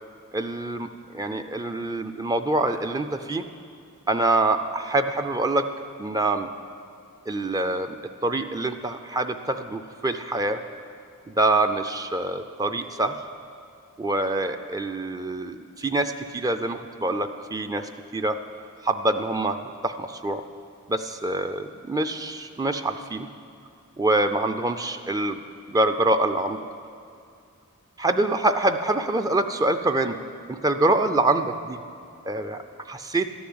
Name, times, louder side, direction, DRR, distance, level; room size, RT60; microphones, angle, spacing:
voice 1, 0.3-3.5 4.1-5.7 6.0-6.5 7.3-8.0 8.2-10.6 11.3-13.1 14.0-18.4 18.8-20.4 20.9-23.3 24.0-26.6 28.0-30.2 30.5-31.8 32.2-33.3, right 2 dB, 15° right, 7 dB, 0.4 m, -25 dB
13.0 x 7.1 x 9.5 m, 2.4 s
head